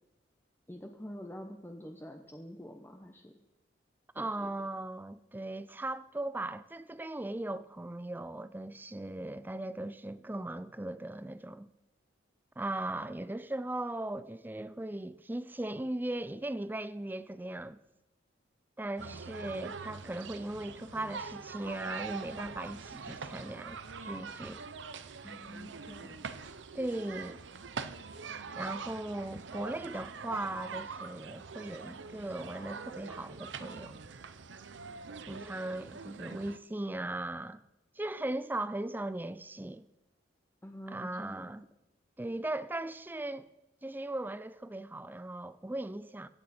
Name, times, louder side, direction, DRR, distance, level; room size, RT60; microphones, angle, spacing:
voice 1, 0.7-3.4 4.2-4.5 19.0-19.2 25.2-26.3 40.6-41.5, equal, 10° left, 0.9 m, -46 dB
voice 2, 4.1-11.7 12.6-17.8 18.8-24.6 26.7-27.4 28.6-34.0 35.3-37.6 38.0-39.9 40.9-41.7 42.2-43.5 43.8-46.3, right 1 dB, 10° right, 0.4 m, -38 dB
sound 1, 19.0-36.6, right 5 dB, 70° right, 0.7 m, -44 dB
24.0 x 9.0 x 4.3 m
head